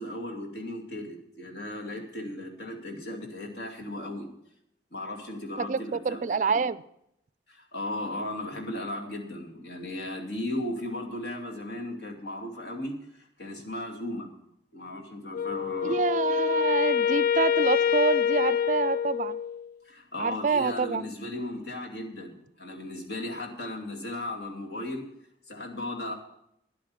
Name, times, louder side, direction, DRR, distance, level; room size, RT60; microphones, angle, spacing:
voice 1, 0.0-4.3 4.9-6.2 6.5-6.6 7.5-14.3 14.7-16.0 19.9-25.0 25.5-26.1, left 1 dB, 70° left, 1 dB, 2.5 m, -36 dB
voice 2, 5.7-6.8 15.8-19.4 20.2-21.0, right 5 dB, 45° right, 17 dB, 0.4 m, -27 dB
Wind instrument woodwind instrument, 15.3-19.7, left 8 dB, 50° left, 0.4 m, -26 dB
10.5 x 8.4 x 7.1 m, 0.75 s
head